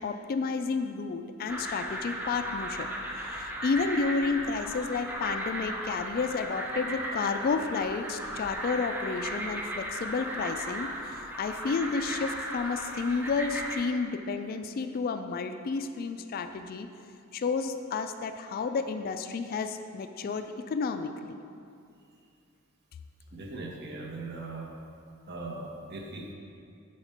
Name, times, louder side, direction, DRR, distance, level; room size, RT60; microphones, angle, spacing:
voice 1, 0.0-2.9 3.4-16.9 17.3-21.1, left 4 dB, 45° left, 8 dB, 0.3 m, -31 dB
sound 1, 1.5-13.8, right 1 dB, 10° right, 0.5 m, -36 dB
voice 2, 23.3-24.7 25.3-26.3, right 2 dB, 50° right, 0 dB, 0.8 m, -39 dB
6.5 x 4.2 x 4.9 m, 2.5 s
head